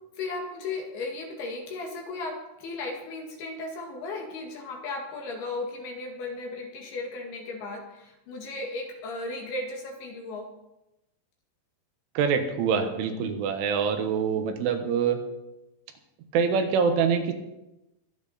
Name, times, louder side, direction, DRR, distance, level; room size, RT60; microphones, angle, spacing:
voice 1, 0.1-10.5 14.5-14.6, left 3 dB, 60° left, 1 dB, 3.6 m, -35 dB
voice 2, 12.2-15.2 16.3-17.3, right 6 dB, 85° right, 6 dB, 3.8 m, -25 dB
23.0 x 8.7 x 4.2 m, 0.95 s
omnidirectional pair, 5.5 m